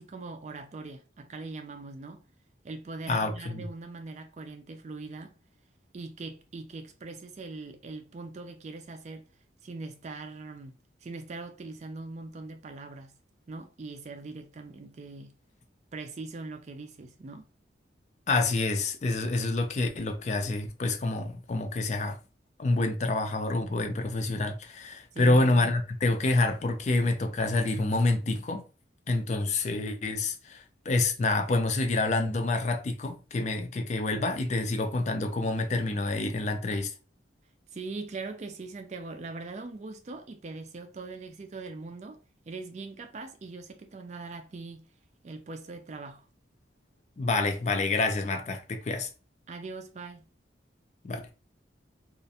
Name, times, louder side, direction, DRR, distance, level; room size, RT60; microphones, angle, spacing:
voice 1, 0.0-2.2 2.6-5.3 5.9-9.2 9.6-10.8 11.0-13.2 13.5-15.4 15.9-17.5 25.1-25.7 37.7-42.2 42.5-44.9 45.2-46.2 49.5-50.2, right 3 dB, 35° right, 0.3 m, -41 dB
voice 2, 3.1-3.6 18.3-22.2 22.6-28.6 29.1-36.9 47.2-49.1 51.0-51.3, left 2 dB, 35° left, 0.3 m, -27 dB
2.4 x 2.1 x 2.7 m
head